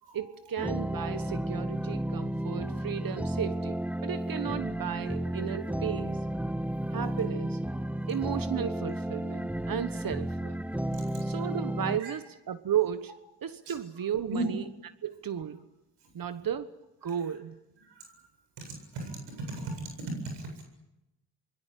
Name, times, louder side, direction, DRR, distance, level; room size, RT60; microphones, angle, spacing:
voice 1, 0.1-6.3 6.9-7.6 8.1-10.6 11.2-14.6 15.0-15.7 16.1-17.6, right 9 dB, 55° right, 1.3 m, -34 dB
sound 1, 0.6-12.0, right 1 dB, 5° right, 1.2 m, -33 dB
voice 2, 10.9-11.4 12.0-12.1 13.7-13.8 14.3-14.5 17.9-18.2 18.6-20.6, right 2 dB, 85° right, 8.0 m, -37 dB
25.5 x 22.0 x 9.3 m
cardioid pair, 65°, 41 cm